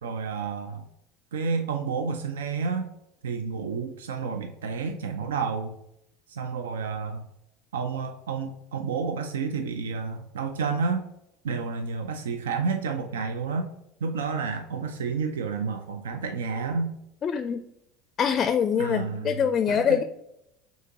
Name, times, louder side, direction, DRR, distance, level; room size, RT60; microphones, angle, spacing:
voice 1, 0.0-0.9 1.3-2.9 3.2-5.7 6.3-7.2 7.7-11.1 11.4-13.7 14.0-16.9 18.8-20.0, right 5 dB, 80° right, 7 dB, 0.4 m, -30 dB
voice 2, 17.2-17.6 18.2-20.0, left 7 dB, 40° left, 9 dB, 0.4 m, -24 dB
6.2 x 2.7 x 2.8 m, 0.81 s
hypercardioid pair, 75°, 0 cm